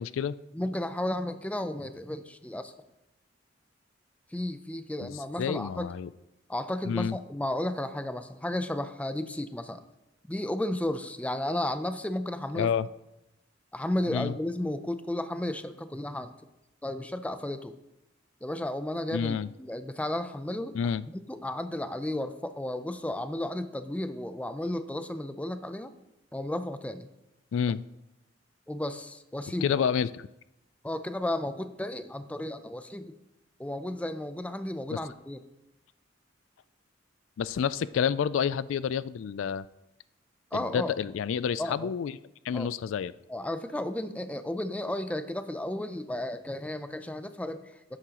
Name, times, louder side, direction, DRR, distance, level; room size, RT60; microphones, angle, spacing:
voice 1, 0.0-0.3 5.0-6.1 6.9-7.2 12.5-12.9 14.1-14.3 19.1-19.5 20.7-21.1 27.5-27.8 29.6-30.3 34.9-35.0 37.4-39.6 40.5-42.1 42.4-43.1, left 7 dB, 80° left, 17 dB, 0.3 m, -29 dB
voice 2, 0.5-2.7 4.3-5.9 6.5-9.8 10.3-12.7 13.7-16.3 16.8-17.7 18.4-20.8 21.3-25.9 26.3-27.1 28.7-29.7 30.8-33.1 33.6-35.4 40.5-41.0 41.6-41.9 42.5-42.7 43.3-48.0, left 1 dB, 5° left, 10 dB, 0.5 m, -33 dB
13.0 x 9.9 x 3.0 m, 0.90 s
head